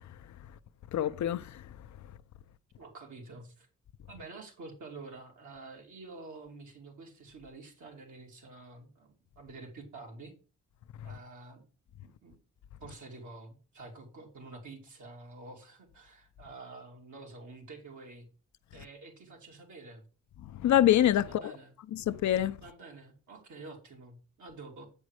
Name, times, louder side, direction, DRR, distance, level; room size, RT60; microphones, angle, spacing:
voice 1, 0.9-1.6 20.4-21.6 21.9-22.6, left 12 dB, 65° left, 0.6 m, -26 dB
voice 2, 2.8-3.7 4.1-10.3 11.0-11.6 12.0-12.4 12.8-18.3 18.7-20.0 21.2-21.7 22.6-24.9, right 3 dB, 70° right, 3.4 m, -48 dB
8.4 x 5.3 x 4.8 m
supercardioid pair, 55°, 31 cm